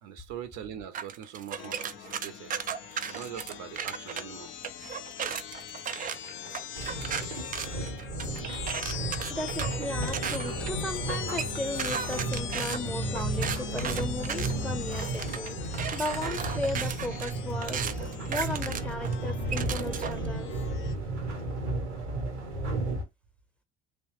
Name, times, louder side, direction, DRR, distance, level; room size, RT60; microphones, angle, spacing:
voice 1, 0.0-2.5 3.1-4.5, right 9 dB, 60° right, 0.7 m, -42 dB
sound 1, 0.9-4.2 4.6-20.3, right 8 dB, 25° right, 0.4 m, -36 dB
sound 2, 1.6-20.9, left 9 dB, 35° left, 0.5 m, -41 dB
sound 3, 6.8-23.0, right 2 dB, 85° right, 1.0 m, -34 dB
voice 2, 9.3-20.5, left 2 dB, 5° left, 0.8 m, -36 dB
3.1 x 2.1 x 2.9 m
figure-of-eight pair, 60°, 33 cm